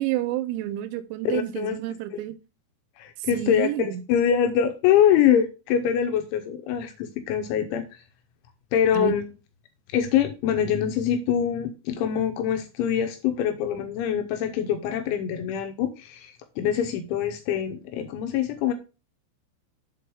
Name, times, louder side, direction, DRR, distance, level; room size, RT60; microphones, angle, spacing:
voice 1, 0.0-2.4 3.3-4.0 8.9-9.2, right 14 dB, 90° right, 3.4 m, -29 dB
voice 2, 1.3-1.8 2.1-2.2 3.0-7.8 8.7-9.3 9.9-18.7, left 9 dB, 80° left, 2.9 m, -24 dB
8.4 x 4.2 x 4.7 m
omnidirectional pair, 6.0 m